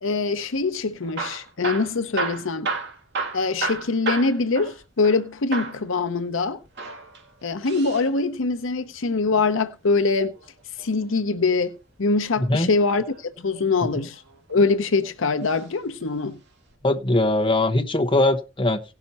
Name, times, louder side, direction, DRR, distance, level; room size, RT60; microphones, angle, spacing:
voice 1, 0.0-2.7 3.3-6.6 7.4-10.3 10.8-14.2 14.5-16.4, left 3 dB, 70° left, 0.8 m, -23 dB
Hammer / Drill, 1.0-5.2 5.5-5.8 6.6-8.1 9.8-11.1 12.8-13.2 13.9-14.8 15.5-15.7 16.0-16.1 16.7-16.8, right 3 dB, 60° right, 2.0 m, -32 dB
voice 2, 12.4-12.7 16.8-18.8, left 2 dB, 25° left, 1.1 m, -21 dB
17.5 x 5.9 x 4.1 m
head